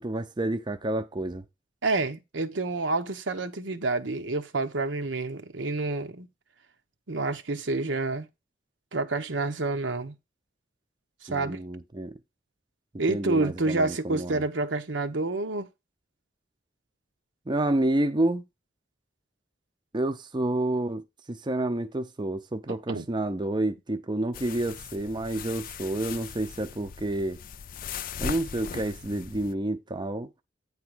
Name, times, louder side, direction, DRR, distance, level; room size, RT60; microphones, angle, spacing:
voice 1, 0.0-1.4 11.3-12.2 13.1-14.4 17.5-18.4 19.9-27.4 28.2-30.3, right 1 dB, 25° right, 0.6 m, -29 dB
voice 2, 1.8-6.3 7.1-8.3 8.9-10.1 11.2-11.6 13.0-15.7 22.9-23.0, right 3 dB, 80° right, 1.0 m, -28 dB
sound 1, 24.3-29.5, left 7 dB, 50° left, 0.4 m, -39 dB
8.9 x 3.5 x 6.1 m
head